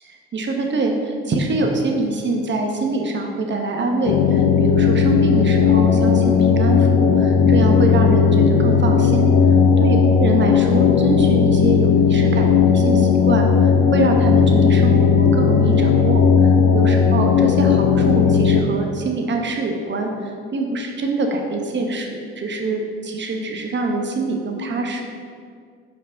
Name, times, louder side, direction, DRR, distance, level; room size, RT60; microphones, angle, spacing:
voice 1, 0.0-9.3 9.8-25.1, right 2 dB, 35° right, 3 dB, 1.0 m, -24 dB
sound 1, 4.1-18.6, left 6 dB, 65° left, 0.6 m, -15 dB
5.4 x 4.6 x 3.9 m, 2.1 s
hypercardioid pair, 55°, 32 cm